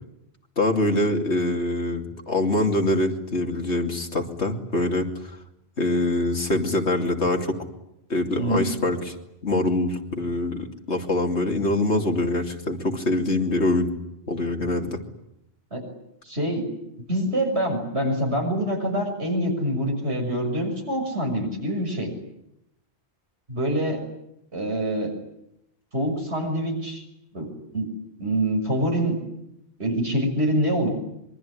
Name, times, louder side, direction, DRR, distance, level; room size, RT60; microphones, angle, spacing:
voice 1, 0.6-5.1 5.8-7.6 8.1-9.1 9.4-13.9 14.3-15.0, left 2 dB, 85° left, 3 dB, 3.1 m, -24 dB
voice 2, 16.3-16.7 17.1-22.1 23.5-24.0 24.5-25.1 25.9-27.0 27.3-27.5 27.7-27.9 28.2-29.2 29.8-30.9, right 1 dB, 75° right, 3 dB, 6.8 m, -25 dB
25.0 x 23.5 x 9.9 m, 0.82 s
omnidirectional pair, 1.1 m